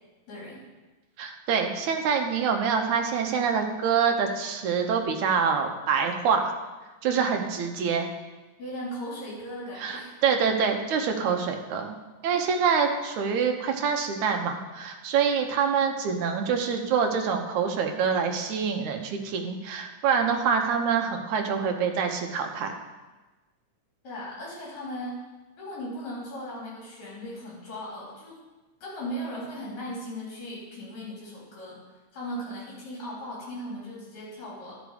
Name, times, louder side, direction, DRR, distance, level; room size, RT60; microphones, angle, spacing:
voice 1, 0.3-0.6 8.6-10.2 24.0-25.2 25.6-28.4 28.8-31.8 32.1-34.8, equal, 65° left, -6 dB, 4.9 m, -37 dB
voice 2, 1.2-6.5 7.0-8.1 9.8-12.0 12.2-22.7, right 6 dB, 80° right, 4 dB, 2.3 m, -26 dB
11.5 x 6.6 x 5.0 m, 1.2 s
omnidirectional pair, 3.4 m